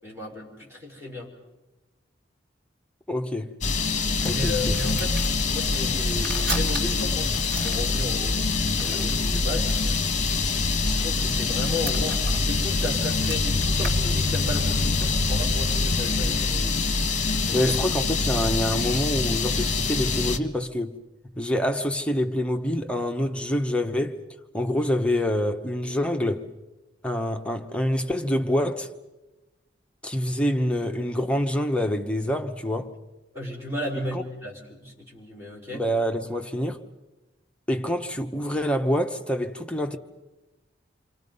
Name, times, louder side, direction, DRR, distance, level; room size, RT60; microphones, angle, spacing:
voice 1, 0.0-1.3 4.2-5.2 5.5-8.4 8.8-10.0 11.0-16.8 17.5-17.7 33.3-35.8, left 1 dB, 15° right, 5.1 m, -34 dB
voice 2, 3.1-3.5 4.2-4.8 17.5-21.0 21.3-24.2 24.5-26.5 27.0-28.9 30.0-32.9 34.1-34.2 35.7-36.8 37.7-40.0, equal, 5° left, 1.0 m, -26 dB
sound 1, 3.6-20.4, left 4 dB, 40° left, 1.2 m, -25 dB
sound 2, 4.2-16.5, equal, 55° right, 2.8 m, -33 dB
sound 3, 12.0-16.7, left 3 dB, 25° left, 1.4 m, -32 dB
29.0 x 24.5 x 5.4 m
head